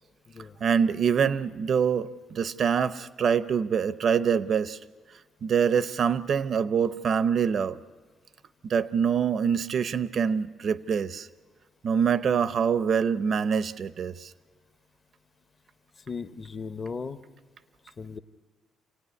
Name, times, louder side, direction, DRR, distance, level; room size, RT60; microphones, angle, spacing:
voice 1, 0.6-4.8 5.4-7.8 8.6-11.3 11.8-14.3, right 7 dB, 40° right, 0.6 m, -25 dB
voice 2, 16.1-17.2 18.0-18.2, left 5 dB, 25° left, 0.8 m, -36 dB
27.5 x 16.5 x 9.6 m
cardioid pair, 165°, 0 cm